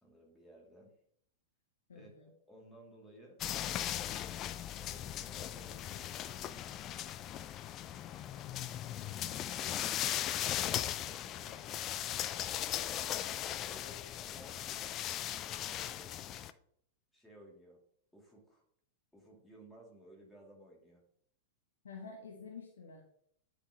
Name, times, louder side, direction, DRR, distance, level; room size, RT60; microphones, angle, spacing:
voice 1, 0.0-1.0 1.9-3.4 4.8-6.7 8.8-10.6 11.0-11.7 13.5-16.2 17.1-17.8 18.1-18.6 19.1-21.0, right 1 dB, 5° left, -3 dB, 2.2 m, -58 dB
voice 2, 1.9-2.3 21.8-23.0, left 5 dB, 65° left, 1 dB, 1.0 m, -49 dB
sound 1, 3.4-16.5, left 11 dB, 30° left, 0.3 m, -38 dB
9.8 x 4.4 x 2.8 m, 0.68 s
figure-of-eight pair, 95°, 0 cm